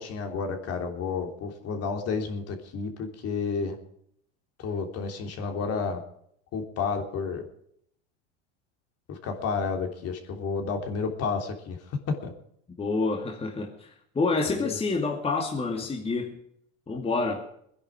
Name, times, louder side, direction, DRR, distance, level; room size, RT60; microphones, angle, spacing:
voice 1, 0.0-3.8 4.6-6.0 6.5-7.4 9.1-11.8 12.1-12.3 14.6-14.7, left 5 dB, 40° left, 4 dB, 3.5 m, -31 dB
voice 2, 12.8-16.4 16.9-17.4, left 3 dB, 15° left, 1 dB, 2.5 m, -28 dB
22.0 x 10.5 x 4.9 m, 0.69 s
supercardioid pair, 120°, 36 cm